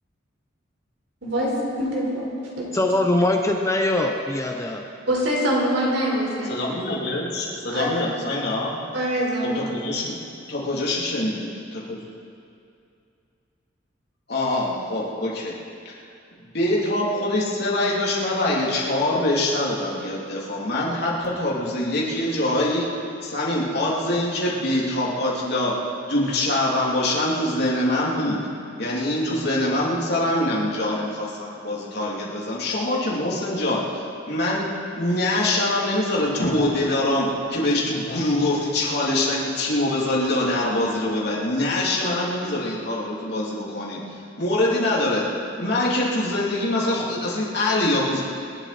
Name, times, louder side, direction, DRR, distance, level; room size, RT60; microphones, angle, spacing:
voice 1, 1.2-2.3 2.6-2.7 5.1-6.5 7.7-8.1 8.9-9.7, equal, 75° right, -4 dB, 4.7 m, -24 dB
voice 2, 2.7-4.8, left 1 dB, 15° left, 2 dB, 0.8 m, -22 dB
voice 3, 6.5-8.8 9.5-10.1 10.5-12.0 14.3-15.5 15.8-15.9 16.5-22.9 23.2-25.7 26.1-28.4 28.8-33.8 34.3-34.7 35.0-44.0 44.4-45.3 45.6-48.2, left 1 dB, 60° left, -5 dB, 3.3 m, -24 dB
26.0 x 11.5 x 4.4 m, 2.5 s
head